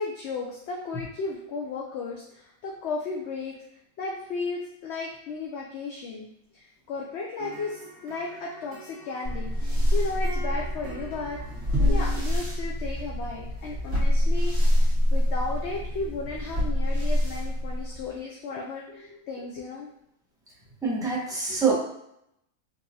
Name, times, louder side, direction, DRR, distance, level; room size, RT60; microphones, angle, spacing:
voice 1, 0.0-3.6 4.0-6.3 6.5-11.4 11.9-19.9, left 4 dB, 65° left, -2 dB, 0.7 m, -35 dB
sound 1, 7.4-12.4, right 4 dB, 75° right, 1.3 m, -42 dB
sound 2, 9.2-18.2, left 1 dB, 20° right, 1.5 m, -26 dB
voice 2, 20.8-21.7, right 5 dB, 5° right, -6 dB, 0.6 m, -25 dB
3.7 x 2.9 x 2.7 m, 0.75 s
omnidirectional pair, 1.6 m